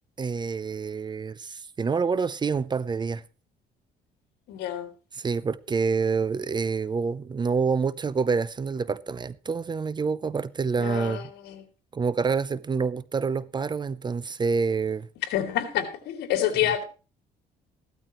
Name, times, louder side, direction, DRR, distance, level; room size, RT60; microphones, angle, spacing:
voice 1, 0.2-3.2 5.1-11.3 11.9-15.1, right 5 dB, 25° right, 0.6 m, -27 dB
voice 2, 4.5-4.9 10.8-11.6 15.3-16.8, left 11 dB, 80° left, 2.9 m, -28 dB
15.5 x 12.5 x 3.1 m
cardioid pair, 110°, 17 cm